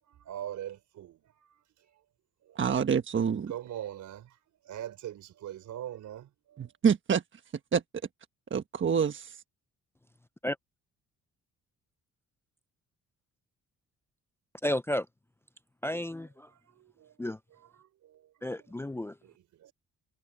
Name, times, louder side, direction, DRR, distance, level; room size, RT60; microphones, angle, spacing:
voice 1, 0.1-1.6 2.5-2.6 3.5-4.4 4.6-6.7 16.7-17.1 17.8-18.2 18.5-18.9 19.2-19.7, right 11 dB, 75° right, 4.3 m, -42 dB
voice 2, 2.6-3.5 6.6-7.2 7.7-7.8 8.5-9.4, right 7 dB, 40° right, 1.3 m, -26 dB
voice 3, 14.6-15.1 15.8-16.5 17.2-17.4 18.4-19.2, left 1 dB, 10° left, 0.5 m, -32 dB
cardioid pair, 90°, 30 cm